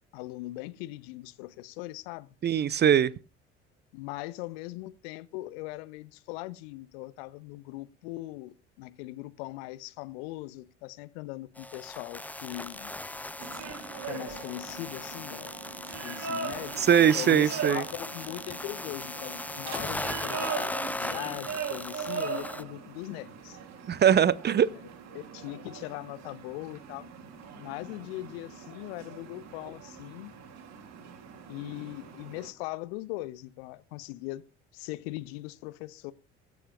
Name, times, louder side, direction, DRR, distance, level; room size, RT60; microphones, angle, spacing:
voice 1, 0.1-2.3 3.9-12.9 14.0-15.6 16.0-16.9 17.1-23.6 24.7-24.8 25.1-27.1 27.6-30.3 31.5-34.4 34.7-36.1, left 18 dB, 65° left, 0.9 m, -40 dB
voice 2, 2.4-3.1 16.8-17.8 23.9-24.7, right 9 dB, 30° right, 0.7 m, -21 dB
sound 1, 11.6-22.6, left 2 dB, 5° left, 0.7 m, -38 dB
sound 2, 13.4-32.5, right 6 dB, 50° right, 2.7 m, -41 dB
23.0 x 8.3 x 2.4 m
figure-of-eight pair, 55°, 33 cm